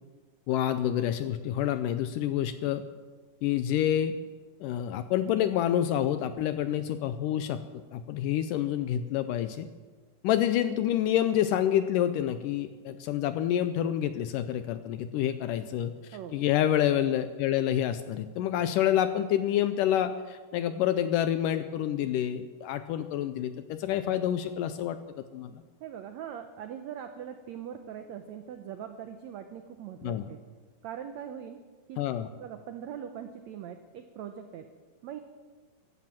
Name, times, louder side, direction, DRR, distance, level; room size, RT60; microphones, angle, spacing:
voice 1, 0.5-2.8 3.4-4.1 4.6-7.6 7.9-9.7 10.2-15.9 16.3-25.0 25.3-25.6 30.0-30.3 32.0-32.3, left 11 dB, 80° left, 11 dB, 2.0 m, -28 dB
voice 2, 25.8-30.4 30.8-31.6 31.9-32.0 32.4-34.7 35.0-35.2, right 9 dB, 85° right, 7 dB, 1.5 m, -41 dB
15.5 x 11.5 x 7.6 m, 1.4 s
omnidirectional pair, 4.3 m